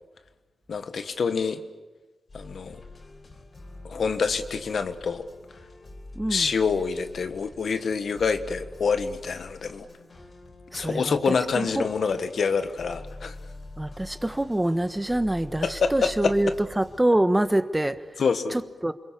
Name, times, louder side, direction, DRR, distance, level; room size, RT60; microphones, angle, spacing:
voice 1, 0.7-1.6 2.3-2.8 3.8-5.3 6.3-9.9 10.7-13.4 15.6-16.4 18.2-18.6, left 5 dB, 75° left, 9 dB, 1.5 m, -26 dB
sound 1, 2.3-17.0, left 2 dB, 50° left, 4.5 m, -45 dB
voice 2, 6.1-6.5 10.7-11.3 11.7-11.8 13.8-16.5 16.8-18.2 18.5-18.9, right 1 dB, 15° right, 11 dB, 1.3 m, -25 dB
29.0 x 22.5 x 8.6 m, 1.2 s
cardioid pair, 65°, 0 cm